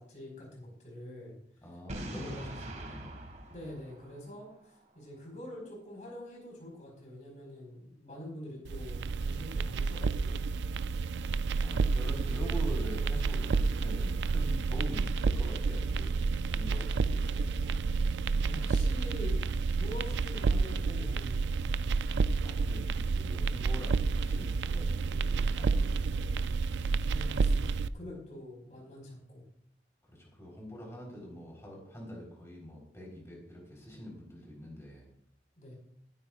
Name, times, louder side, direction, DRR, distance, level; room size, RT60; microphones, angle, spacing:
voice 1, 0.0-1.3 2.0-2.5 3.5-10.5 18.4-19.4 19.7-21.8 27.0-29.4 35.6-35.8, left 1 dB, 45° left, -2 dB, 4.7 m, -46 dB
voice 2, 1.6-3.2 11.6-16.2 16.5-17.8 22.4-26.6 30.1-35.1, equal, 15° left, -1 dB, 4.0 m, -45 dB
Boom, 1.9-4.8, right 1 dB, 40° right, 1.8 m, -43 dB
sound 1, 8.6-27.9, right 4 dB, 85° right, 0.4 m, -30 dB
18.5 x 10.5 x 2.5 m, 0.67 s
head